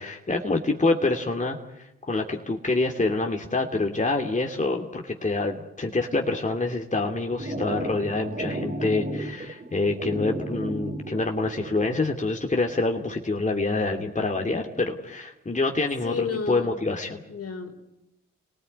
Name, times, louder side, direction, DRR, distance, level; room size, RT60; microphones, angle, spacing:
voice 1, 0.0-17.2, left 3 dB, 25° left, 2 dB, 2.7 m, -26 dB
sound 1, 7.0-12.0, right 1 dB, 25° right, 2.6 m, -33 dB
voice 2, 16.0-16.8 17.3-18.0, left 5 dB, 50° left, 6 dB, 3.8 m, -33 dB
28.5 x 19.0 x 9.6 m, 0.89 s
supercardioid pair, 50°, 31 cm